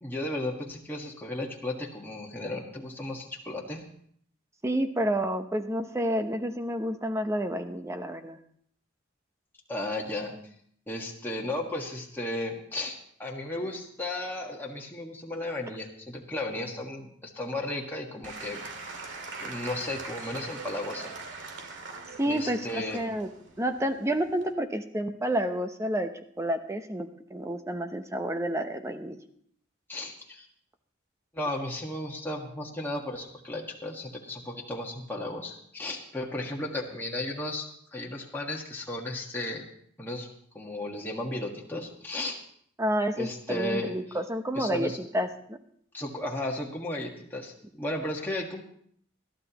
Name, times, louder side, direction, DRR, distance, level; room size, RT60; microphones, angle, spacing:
voice 1, 0.0-3.8 9.7-10.3 10.9-19.0 19.4-21.1 22.3-23.0 29.9-30.4 31.3-39.6 40.0-40.3 40.5-42.4 43.2-43.9 44.5-45.0 45.9-48.6, left 1 dB, 10° left, -2 dB, 1.5 m, -34 dB
voice 2, 4.6-8.4 22.2-23.3 23.6-26.1 26.4-29.2 42.8-45.6, right 1 dB, 15° right, 7 dB, 0.7 m, -29 dB
Applause / Crowd, 18.2-24.5, right 3 dB, 65° right, 2.0 m, -41 dB
21.0 x 13.0 x 3.0 m, 0.64 s
head